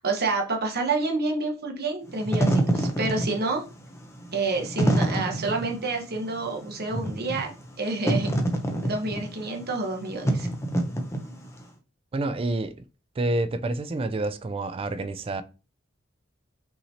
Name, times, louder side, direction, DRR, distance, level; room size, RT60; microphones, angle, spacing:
voice 1, 0.0-3.6 4.3-8.3 8.8-10.5, right 3 dB, 50° right, 1.1 m, -28 dB
Wind / Fire, 2.1-11.6, right 1 dB, 15° left, 0.7 m, -27 dB
voice 2, 12.1-12.7 13.2-15.4, right 2 dB, 25° right, 0.3 m, -28 dB
5.6 x 3.0 x 2.8 m
head